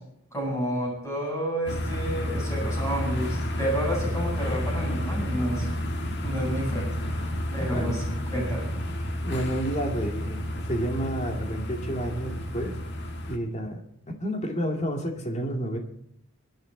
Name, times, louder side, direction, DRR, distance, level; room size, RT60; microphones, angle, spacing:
voice 1, 0.3-5.7 6.2-6.9 7.5-8.0 8.3-8.7, equal, 15° left, -3 dB, 7.7 m, -30 dB
sound 1, 1.7-13.4, equal, 55° left, 1.7 m, -30 dB
voice 2, 9.2-12.8 13.3-13.8 14.2-15.8, right 1 dB, 35° left, 2 dB, 2.3 m, -30 dB
24.5 x 10.5 x 3.9 m, 0.72 s
head